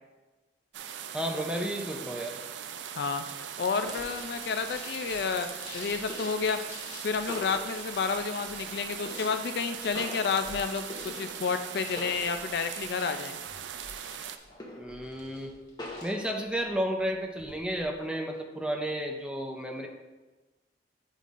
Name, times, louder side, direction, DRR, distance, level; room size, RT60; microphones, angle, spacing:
sound 1, 0.7-14.4, right 8 dB, 85° right, 0.4 m, -40 dB
voice 1, 1.1-2.3 14.8-15.5 16.0-19.9, equal, 5° right, 3 dB, 0.5 m, -32 dB
voice 2, 3.6-5.5 5.7-6.6 7.0-10.8 11.1-13.4, left 5 dB, 60° left, 8 dB, 0.4 m, -30 dB
sound 2, 3.8-4.8 6.1-6.6 7.3-8.2 9.1-9.7 10.0-11.7 12.0-12.7 13.1-13.3 14.6-15.1 15.8-16.3, left 1 dB, 25° left, 0.9 m, -43 dB
sound 3, 3.9-17.8, left 2 dB, 40° left, 1.7 m, -49 dB
8.0 x 5.2 x 2.5 m, 1.2 s
head